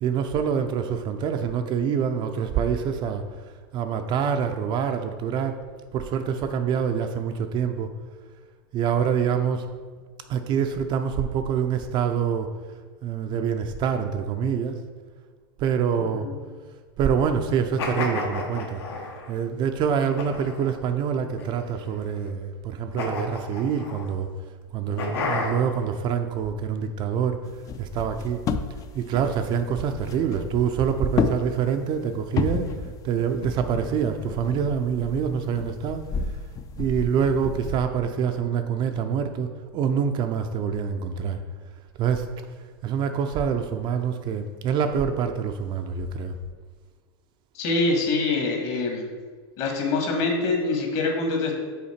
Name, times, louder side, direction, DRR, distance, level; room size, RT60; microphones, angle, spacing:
voice 1, 0.0-3.2 3.7-5.6 5.9-7.9 8.7-9.7 10.3-12.5 13.0-14.8 15.6-16.3 17.0-18.8 19.3-24.3 24.7-27.4 27.8-28.4 28.9-32.7 33.0-36.1 36.8-41.4 42.0-42.3 42.8-46.4, right 7 dB, 35° right, 6 dB, 0.4 m, -26 dB
sound 1, 17.8-19.3 20.2-20.7 21.4-22.1 23.0-24.1 25.0-25.8, left 3 dB, 80° left, 1.2 m, -31 dB
sound 2, 27.4-37.9, left 5 dB, 25° left, 0.4 m, -32 dB
voice 2, 47.5-49.1 49.6-51.5, left 3 dB, 50° left, 1 dB, 1.5 m, -24 dB
5.7 x 4.0 x 4.3 m, 1.5 s
hypercardioid pair, 115°, 13 cm